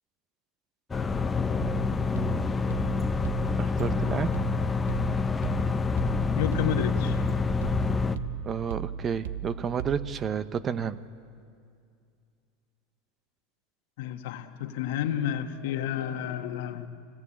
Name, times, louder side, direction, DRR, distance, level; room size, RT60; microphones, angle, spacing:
sound 1, 0.9-8.2, left 4 dB, 20° left, 1.0 m, -27 dB
sound 2, 1.6-10.3, right 9 dB, 80° right, 1.0 m, -37 dB
voice 1, 3.6-4.3 8.4-11.0, right 7 dB, 35° right, 13 dB, 0.9 m, -30 dB
voice 2, 6.4-7.2 14.0-16.9, left 9 dB, 70° left, 7 dB, 1.5 m, -31 dB
26.0 x 18.5 x 8.7 m, 2.3 s
hypercardioid pair, 100°, 0 cm